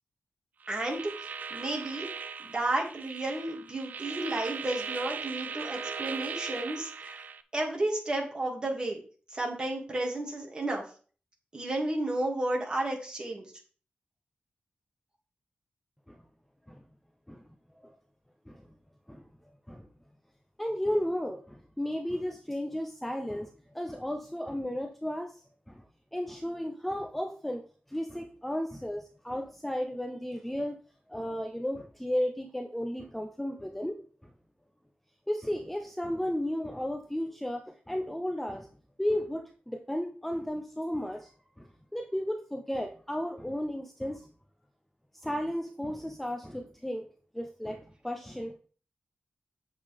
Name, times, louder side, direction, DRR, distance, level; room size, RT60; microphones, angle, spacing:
sound 1, 0.6-7.4, right 6 dB, 55° right, 0.6 m, -39 dB
voice 1, 0.7-1.1 1.5-2.1 2.4-7.2 7.5-9.0 9.3-10.8 11.5-13.4, right 2 dB, 25° right, 0 dB, 2.4 m, -32 dB
voice 2, 20.6-23.5 23.7-25.3 26.1-27.6 27.9-30.8 31.1-34.0 35.3-38.7 39.0-41.3 41.6-41.7 41.9-44.2 45.2-47.1 47.3-48.6, equal, 5° left, 4 dB, 0.6 m, -33 dB
8.4 x 7.4 x 3.5 m, 0.40 s
wide cardioid pair, 165°, 3 cm